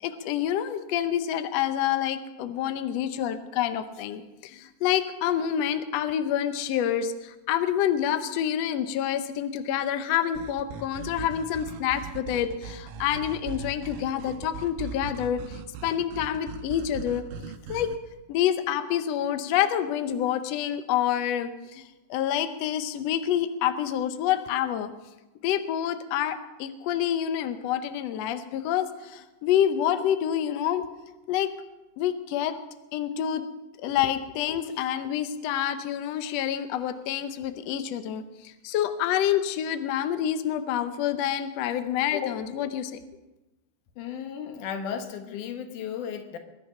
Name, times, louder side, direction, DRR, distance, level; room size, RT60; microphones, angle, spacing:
voice 1, 0.0-17.2 17.7-17.9 18.3-24.9 25.4-30.9 31.3-31.5 32.0-32.6 32.9-33.5 33.8-43.0, left 10 dB, 85° left, 10 dB, 1.4 m, -27 dB
sound 1, 10.3-18.0, right 5 dB, 75° right, 2.4 m, -40 dB
voice 2, 44.0-46.4, left 7 dB, 65° left, 7 dB, 2.6 m, -35 dB
21.5 x 10.5 x 5.6 m, 1.0 s
omnidirectional pair, 4.1 m